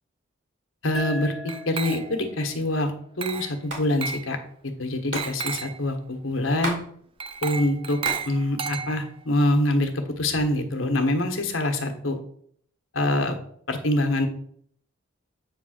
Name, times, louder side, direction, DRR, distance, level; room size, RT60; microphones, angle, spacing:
voice 1, 0.8-4.4 4.8-6.8 7.4-8.0 8.2-9.9 10.2-12.2 12.9-13.4 13.7-14.3, left 1 dB, 70° left, 5 dB, 1.3 m, -25 dB
sound 1, 0.9-4.1, equal, ahead, 1.0 m, -40 dB
Glass, 1.5-2.3 3.2-3.6 4.0-4.3 5.2-5.8 7.2-9.2, right 6 dB, 25° right, 0.4 m, -33 dB
Hands, 3.7-3.9 4.1-4.2 4.4-6.9 7.2-8.3 8.7-9.4 10.0-10.6, right 1 dB, 60° right, 2.5 m, -35 dB
8.6 x 3.5 x 6.5 m, 0.62 s
head